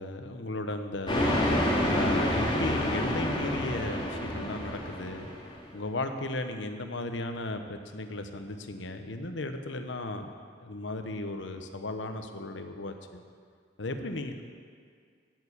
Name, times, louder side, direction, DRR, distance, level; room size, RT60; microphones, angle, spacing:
voice 1, 0.0-1.3 1.9-5.3 5.7-10.3 10.6-13.2 13.8-14.4, left 2 dB, 75° left, 7 dB, 1.0 m, -35 dB
sound 1, 1.1-5.6, left 1 dB, 25° left, 2.8 m, -28 dB
9.4 x 9.3 x 8.4 m, 2.1 s
head